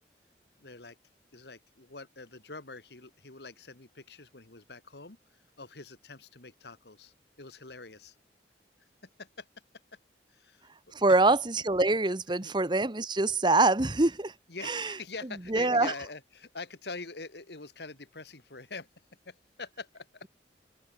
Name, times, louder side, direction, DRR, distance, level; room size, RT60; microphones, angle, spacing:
voice 1, 0.6-1.0 1.3-5.2 5.6-8.2 9.2-9.5 10.3-10.7 11.1-11.2 12.4-12.5 14.5-18.9 19.3-20.3, left 3 dB, 70° left, 2.1 m, -44 dB
voice 2, 10.9-14.3 14.6-14.9 15.5-15.9, right 2 dB, 25° right, 1.0 m, -25 dB
open air
head